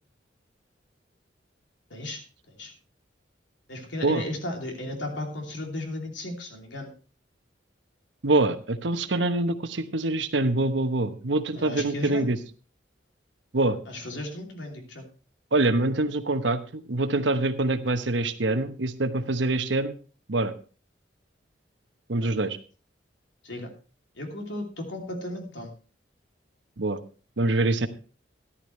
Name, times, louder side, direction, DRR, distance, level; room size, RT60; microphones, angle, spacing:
voice 1, 1.9-2.2 2.5-2.7 3.7-6.9 11.5-12.3 13.9-15.1 22.2-22.3 23.4-23.7 24.1-25.7, left 1 dB, 85° left, 2 dB, 3.0 m, -35 dB
voice 2, 8.2-12.4 13.5-13.8 15.5-19.9 20.3-20.5 22.1-22.6 26.8-27.0 27.4-27.9, right 2 dB, 80° right, 10 dB, 1.0 m, -25 dB
14.0 x 11.5 x 3.2 m, 0.36 s
head